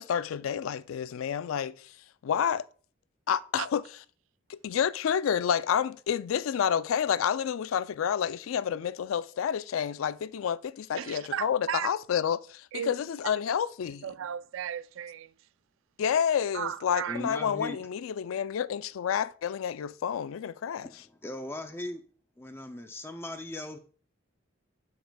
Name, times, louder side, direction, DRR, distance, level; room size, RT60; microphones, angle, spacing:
voice 1, 0.0-1.9 2.2-2.6 3.3-3.8 4.5-14.1 16.0-20.9, left 8 dB, 90° left, 0.3 m, -29 dB
voice 2, 11.0-11.9 12.7-12.9 14.0-15.3 16.5-17.4, right 9 dB, 75° right, 0.3 m, -35 dB
voice 3, 17.1-17.8 20.8-22.0 22.4-23.8, left 1 dB, 10° left, 0.4 m, -38 dB
12.5 x 5.9 x 2.2 m
head